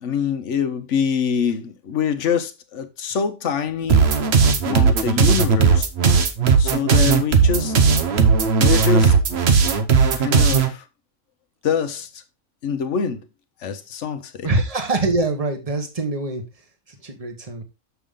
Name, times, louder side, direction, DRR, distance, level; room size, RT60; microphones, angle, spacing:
voice 1, 0.0-5.9 6.6-7.7 8.5-9.2 10.2-10.8 11.6-12.2 12.6-13.3 13.6-14.5, left 6 dB, 70° left, 1.2 m, -25 dB
sound 1, 3.9-10.7, right 5 dB, 55° right, 1.1 m, -16 dB
voice 2, 14.4-16.4 17.0-17.6, right 2 dB, 30° right, 1.4 m, -23 dB
6.9 x 6.0 x 3.6 m
omnidirectional pair, 1.3 m